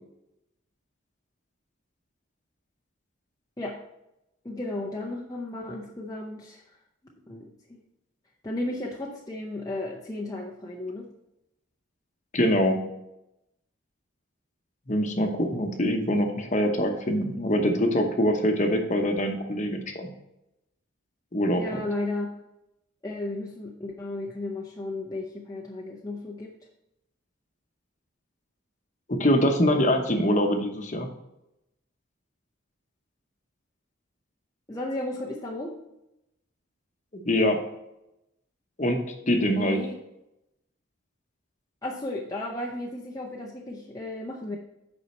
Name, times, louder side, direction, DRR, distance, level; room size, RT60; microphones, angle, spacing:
voice 1, 4.4-6.6 7.1-7.8 8.4-11.1 16.0-16.2 21.6-22.4 23.0-26.6 34.7-35.7 39.4-39.9 41.8-44.6, left 2 dB, 15° left, -2 dB, 0.6 m, -34 dB
voice 2, 12.3-12.8 14.9-20.1 21.3-21.8 29.1-31.1 37.1-37.6 38.8-39.0 39.3-39.8, equal, 35° left, 4 dB, 0.9 m, -24 dB
8.3 x 5.4 x 4.3 m, 0.88 s
head